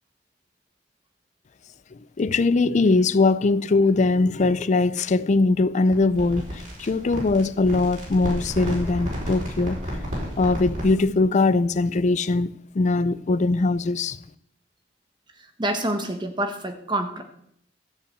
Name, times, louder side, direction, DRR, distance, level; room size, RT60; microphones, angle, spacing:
voice 1, 2.2-9.8 10.4-14.2, left 3 dB, 40° left, 0.4 m, -21 dB
sound 1, 5.9-11.0, equal, 45° right, 4.7 m, -32 dB
voice 2, 15.4-17.2, right 1 dB, 25° right, 1.1 m, -27 dB
14.0 x 5.7 x 8.0 m
head